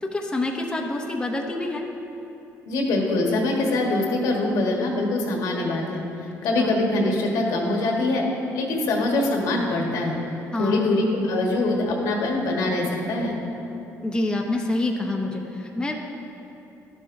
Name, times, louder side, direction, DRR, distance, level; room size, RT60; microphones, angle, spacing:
voice 1, 0.0-1.9 6.6-6.7 10.5-11.0 14.0-15.9, left 2 dB, 15° left, 1 dB, 0.7 m, -26 dB
voice 2, 2.7-6.0 6.4-8.3 8.5-10.2 10.6-13.4, left 2 dB, 80° left, 0 dB, 1.3 m, -23 dB
12.0 x 7.4 x 2.6 m, 2.9 s
cardioid pair, 105°, 6 cm